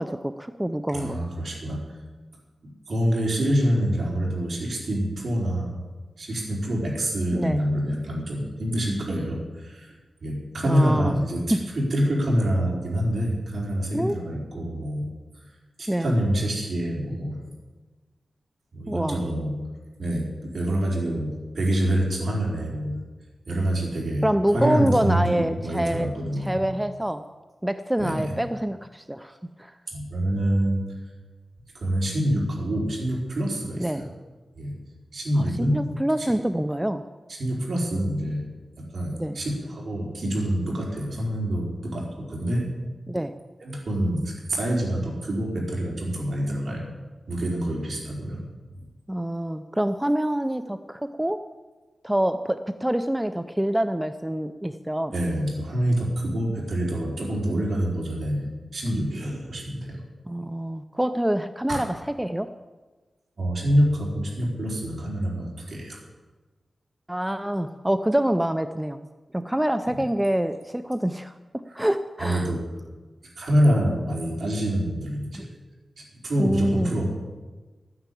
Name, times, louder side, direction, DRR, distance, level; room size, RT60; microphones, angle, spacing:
voice 1, 0.0-1.2 7.3-7.6 10.6-11.1 11.5-11.6 13.9-14.2 15.9-16.1 18.9-19.2 24.2-26.1 26.4-27.2 27.6-29.8 33.8-34.1 35.4-35.5 35.7-37.0 39.1-39.4 43.1-43.3 49.1-51.4 52.0-55.2 60.3-62.5 67.1-69.0 69.3-72.5 75.3-75.5 76.4-76.9, right 1 dB, 5° right, 9 dB, 0.5 m, -26 dB
voice 2, 0.9-1.8 2.9-5.7 6.2-9.9 10.2-15.1 15.8-17.4 18.7-19.5 20.0-23.0 23.5-24.3 24.5-26.6 28.0-28.3 29.9-30.8 31.7-34.1 34.5-34.7 35.1-35.8 36.2-36.3 37.3-38.4 38.8-42.7 43.6-46.9 47.3-48.4 48.7-48.9 55.1-60.0 61.7-61.8 63.4-66.0 69.9-70.0 72.2-72.6 73.4-75.5 76.0-77.1, equal, 60° right, -2 dB, 4.3 m, -26 dB
12.5 x 9.7 x 8.3 m, 1.3 s
wide cardioid pair, 145°, 0 cm